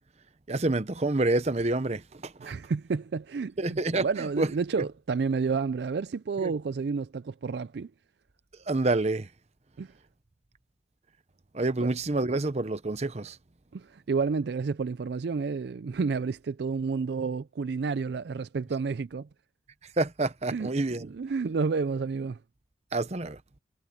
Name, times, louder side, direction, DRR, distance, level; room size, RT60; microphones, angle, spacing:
voice 1, 0.5-2.5 3.6-4.5 6.4-6.5 8.7-9.3 11.5-13.4 20.0-21.1 22.9-23.4, right 2 dB, 35° right, 0.8 m, -28 dB
voice 2, 2.4-7.9 9.8-9.9 11.8-11.9 13.7-19.3 20.5-20.7 21.0-22.4, right 5 dB, 60° right, 0.4 m, -30 dB
head